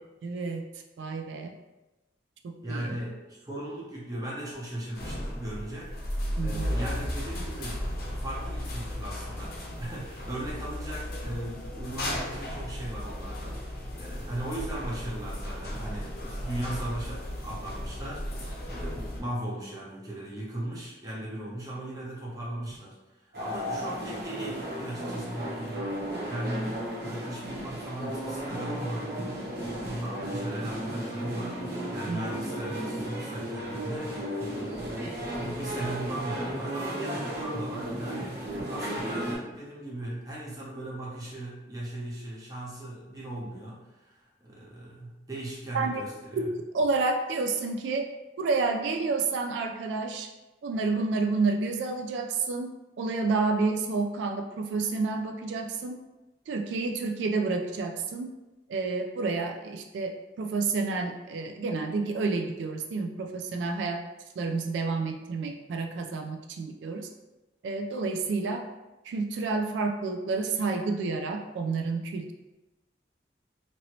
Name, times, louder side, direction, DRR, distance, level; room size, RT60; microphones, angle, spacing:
voice 1, 0.2-0.6 1.0-1.5 2.7-3.0 6.4-6.7 32.1-32.2 45.7-46.0 46.3-46.5 46.7-48.0 48.4-50.3 50.6-52.7 53.0-56.0 56.5-58.3 58.7-60.1 60.4-64.0 64.4-67.1 67.6-68.6 69.0-72.3, right 3 dB, 90° right, 4 dB, 0.3 m, -29 dB
voice 2, 2.6-23.0 23.2-46.5, right 1 dB, 20° right, -5 dB, 0.7 m, -38 dB
sound 1, 4.9-19.2, equal, 55° left, 0.6 m, -35 dB
sound 2, 23.3-39.3, right 1 dB, 60° right, 0.9 m, -34 dB
2.9 x 2.7 x 2.9 m, 1.1 s
head